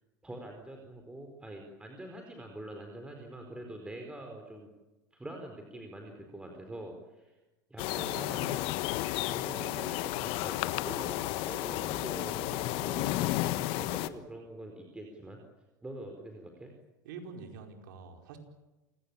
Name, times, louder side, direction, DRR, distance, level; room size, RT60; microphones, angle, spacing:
voice 1, 0.2-4.7 5.1-7.4 7.7-8.8 9.2-13.1 13.8-15.4 15.8-16.7, right 1 dB, 10° right, 3 dB, 4.5 m, -44 dB
sound 1, 7.8-14.1, left 16 dB, 60° left, 1.4 m, -32 dB
voice 2, 17.0-18.4, right 5 dB, 75° right, 3 dB, 4.8 m, -46 dB
28.5 x 17.5 x 8.8 m, 1.1 s
hypercardioid pair, 100°, 11 cm